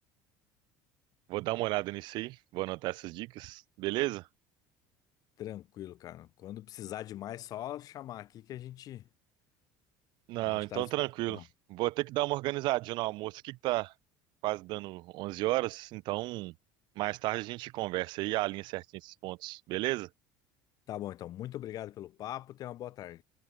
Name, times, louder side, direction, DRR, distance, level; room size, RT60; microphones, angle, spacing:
voice 1, 1.3-4.3 10.3-13.9 14.4-16.5 17.0-20.1, right 20 dB, 60° right, 0.8 m, -33 dB
voice 2, 5.4-9.1 10.4-10.9 11.3-11.4 20.9-23.2, left 13 dB, 45° left, 2.2 m, -41 dB
cardioid pair, 155°, 9 cm